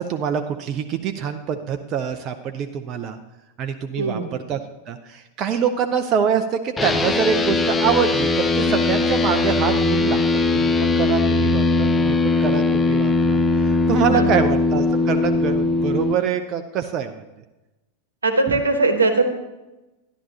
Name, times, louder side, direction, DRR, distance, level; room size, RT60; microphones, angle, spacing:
voice 1, 0.0-3.2 3.6-4.6 4.9-10.2 10.5-17.2, right 7 dB, 35° right, 7 dB, 0.5 m, -25 dB
voice 2, 4.0-4.4 14.1-14.4 18.2-19.2, right 3 dB, 75° right, 6 dB, 1.1 m, -20 dB
sound 1, 6.8-16.1, left 3 dB, 15° left, 0.6 m, -20 dB
12.0 x 11.0 x 2.8 m, 1.0 s
figure-of-eight pair, 90°, 0 cm